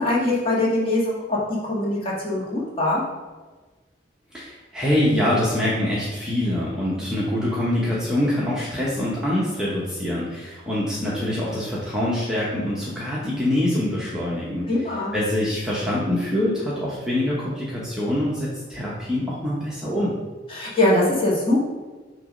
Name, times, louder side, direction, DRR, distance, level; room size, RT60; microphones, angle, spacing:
voice 1, 0.0-3.0 6.9-7.1 14.7-15.1 20.5-21.6, left 1 dB, 30° left, -6 dB, 1.7 m, -22 dB
voice 2, 4.3-14.7 15.1-20.1, left 1 dB, 5° right, -7 dB, 0.9 m, -24 dB
6.8 x 3.0 x 5.1 m, 1.3 s
head